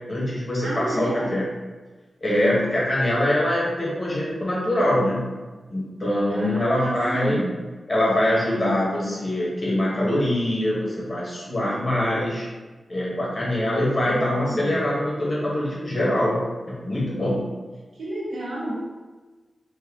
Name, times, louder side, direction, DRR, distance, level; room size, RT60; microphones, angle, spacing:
voice 1, 0.0-1.5 2.2-5.3 5.7-7.4 7.9-12.5 12.9-17.4, left 1 dB, 30° left, -6 dB, 1.3 m, -23 dB
voice 2, 0.6-1.4 6.3-7.6 14.0-14.9 17.9-18.7, right 1 dB, 70° right, -5 dB, 1.2 m, -30 dB
4.2 x 2.1 x 3.7 m, 1.3 s
wide cardioid pair, 145°, 0 cm